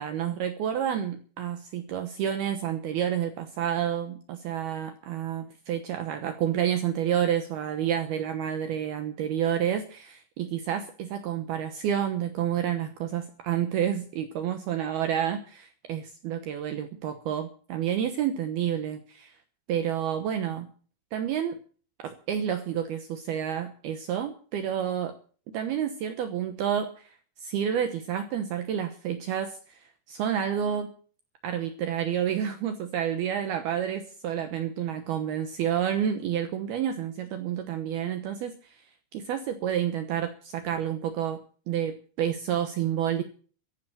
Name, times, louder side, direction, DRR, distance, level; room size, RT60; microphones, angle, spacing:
voice 1, 0.0-19.4 19.7-20.7 21.1-21.6 22.0-25.1 25.5-27.2 27.4-30.9 31.4-38.8 39.1-41.4 41.7-43.2, right 9 dB, 75° right, 8 dB, 2.4 m, -29 dB
15.0 x 10.5 x 7.4 m, 0.43 s
omnidirectional pair, 5.8 m